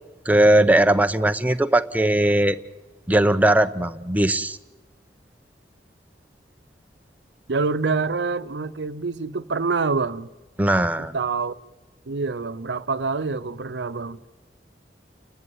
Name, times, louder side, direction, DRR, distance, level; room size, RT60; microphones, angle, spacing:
voice 1, 0.3-2.6 3.1-4.6 10.6-11.1, right 1 dB, 10° right, 0.7 m, -19 dB
voice 2, 7.5-10.3 11.0-11.5 12.1-14.2, right 4 dB, 85° right, 0.7 m, -26 dB
29.5 x 11.0 x 9.5 m
head